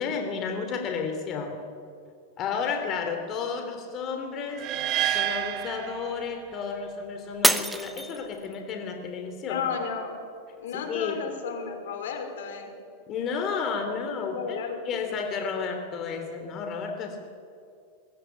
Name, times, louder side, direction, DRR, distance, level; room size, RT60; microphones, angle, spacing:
voice 1, 0.0-1.6 2.4-4.6 5.1-9.6 10.7-11.2 13.1-14.6 14.8-17.3, left 5 dB, 35° left, 4 dB, 3.3 m, -32 dB
sound 1, 4.6-6.7, right 12 dB, 40° right, 1.7 m, -29 dB
Shatter, 7.4-8.7 9.3-9.7 10.3-10.4, right 1 dB, 5° right, 1.2 m, -25 dB
voice 2, 9.4-10.2 10.6-12.7 14.2-15.0, left 6 dB, 80° left, 5 dB, 5.4 m, -33 dB
22.0 x 21.5 x 9.5 m, 2.3 s
supercardioid pair, 145°, 0 cm